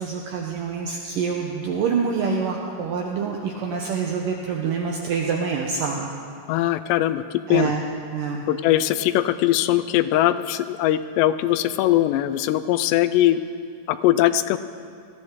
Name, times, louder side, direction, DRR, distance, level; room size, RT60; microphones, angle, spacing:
voice 1, 0.0-6.1 7.5-7.8 8.1-8.4, right 6 dB, 80° right, 0 dB, 1.9 m, -26 dB
voice 2, 6.5-7.7 8.5-13.4 13.9-14.6, left 13 dB, 85° left, 13 dB, 2.7 m, -21 dB
19.5 x 14.5 x 3.7 m, 2.2 s
omnidirectional pair, 4.9 m